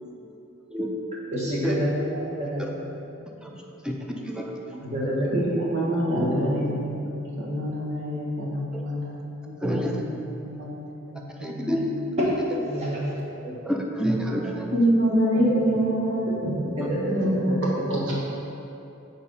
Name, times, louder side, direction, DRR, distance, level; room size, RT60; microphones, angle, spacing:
voice 1, 1.3-2.0 2.4-2.9 4.7-5.3 6.1-6.4 12.2-12.3 12.6-13.1 13.4-13.5 15.3-15.4 16.3-16.4 16.8-17.4, equal, 35° right, -6 dB, 1.5 m, -27 dB
voice 2, 5.3-9.2 9.7-10.1 10.4-10.8 11.1-11.3 11.5-11.9 14.7-18.2, right 1 dB, 65° right, -5 dB, 1.6 m, -26 dB
voice 3, 9.6-9.9 11.4-11.8 13.6-14.7, equal, 5° right, 0 dB, 0.6 m, -27 dB
6.0 x 4.4 x 5.5 m, 2.7 s
head